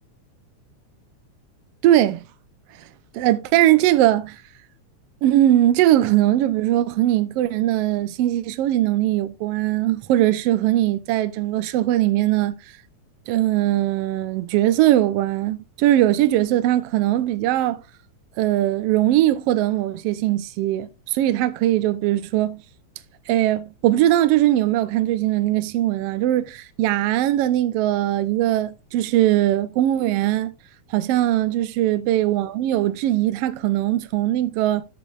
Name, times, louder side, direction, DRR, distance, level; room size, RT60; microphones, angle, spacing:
voice 1, 1.8-2.2 3.1-4.4 5.2-12.5 13.3-17.8 18.4-22.6 23.3-30.5 30.9-34.8, right 13 dB, 75° right, 1.4 m, -20 dB
13.0 x 6.6 x 2.4 m
omnidirectional pair, 3.4 m